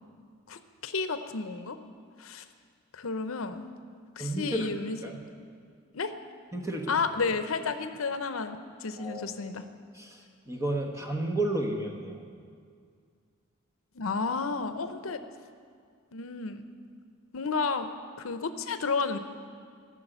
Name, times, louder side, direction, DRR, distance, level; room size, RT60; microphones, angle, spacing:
voice 1, 0.5-1.8 2.2-2.4 2.9-3.7 4.2-5.0 5.9-6.1 6.9-9.6 13.9-15.2 16.1-16.6 17.3-17.9 18.2-19.2, left 4 dB, 75° left, 9 dB, 0.7 m, -31 dB
voice 2, 4.2-4.7 5.0-5.2 6.5-7.0 9.0-9.3 9.9-12.2, right 1 dB, 15° right, 1 dB, 1.1 m, -32 dB
14.0 x 6.5 x 8.0 m, 2.2 s
head